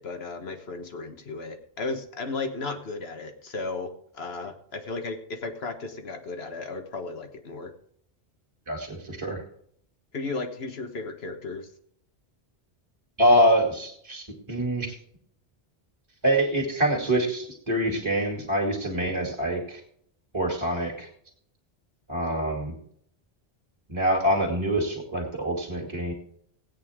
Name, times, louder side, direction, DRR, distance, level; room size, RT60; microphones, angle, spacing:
voice 1, 0.0-7.7 10.1-11.7, left 3 dB, 70° left, 6 dB, 1.5 m, -35 dB
voice 2, 8.7-9.4 13.2-14.9 16.2-19.8 20.3-21.1 22.1-22.7 23.9-26.1, equal, 25° right, -1 dB, 2.6 m, -25 dB
16.5 x 9.0 x 3.6 m, 0.64 s
omnidirectional pair, 1.1 m